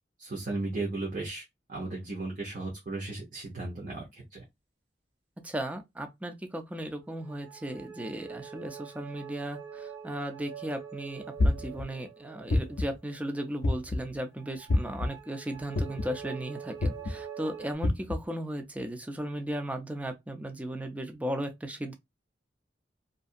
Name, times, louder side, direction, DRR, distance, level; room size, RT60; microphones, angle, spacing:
voice 1, 0.2-1.4 1.7-4.4, right 2 dB, 50° right, 0.8 m, -35 dB
voice 2, 5.4-22.0, right 1 dB, 10° right, 0.4 m, -36 dB
sound 1, 7.0-13.6 14.3-17.8, right 7 dB, 80° right, 0.9 m, -45 dB
sound 2, 11.4-11.8 12.5-13.0 13.6-14.1 14.7-15.1 15.7-16.2 16.8-17.1 17.8-18.2, left 2 dB, 70° left, 0.4 m, -26 dB
2.7 x 2.5 x 2.4 m
head